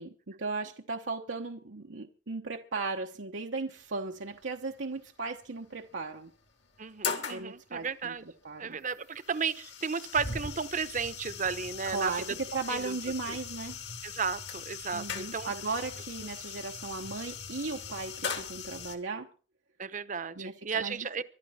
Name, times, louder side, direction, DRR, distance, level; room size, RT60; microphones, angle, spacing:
voice 1, 0.0-6.3 7.3-8.1 8.4-8.8 11.9-13.8 14.9-19.3 20.4-21.2, right 3 dB, 85° right, 1.1 m, -36 dB
sound 1, 3.9-4.3 5.4-5.5 6.0-6.1 6.6-7.5 8.6-19.0, left 6 dB, 65° left, 2.5 m, -40 dB
voice 2, 6.8-8.2 8.6-12.2 12.7-12.9 13.3-13.4 14.0-15.5 19.8-21.2, right 6 dB, 45° right, 0.9 m, -34 dB
24.0 x 12.0 x 4.2 m
head